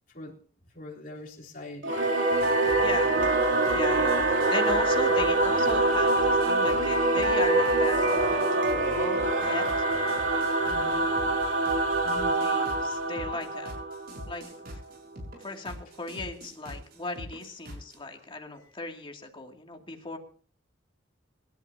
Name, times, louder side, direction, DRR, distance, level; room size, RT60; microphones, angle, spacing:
voice 1, 0.1-0.4 0.7-1.9 10.6-11.1 12.0-12.4 18.5-18.7, left 1 dB, 50° left, -2 dB, 3.7 m, -43 dB
Singing / Musical instrument, 1.8-14.7, right 2 dB, 80° right, 3.0 m, -25 dB
sound 1, 2.3-18.0, equal, 55° right, 6.3 m, -44 dB
voice 2, 2.8-3.1 3.7-9.8 12.4-13.8 14.3-14.8 15.4-20.2, left 2 dB, 30° left, 2 dB, 2.6 m, -37 dB
26.0 x 12.5 x 2.8 m, 0.43 s
head